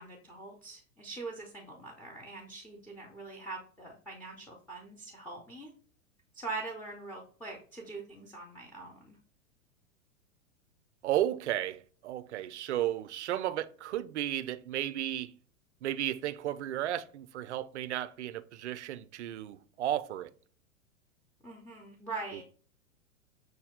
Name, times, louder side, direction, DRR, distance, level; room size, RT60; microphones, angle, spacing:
voice 1, 0.0-5.7 6.3-9.2 21.4-22.4, right 3 dB, 5° left, 0.4 m, -43 dB
voice 2, 11.0-15.4 15.8-20.3 22.3-22.4, right 12 dB, 60° right, 0.5 m, -34 dB
6.4 x 2.2 x 3.5 m
figure-of-eight pair, 100°, 40 cm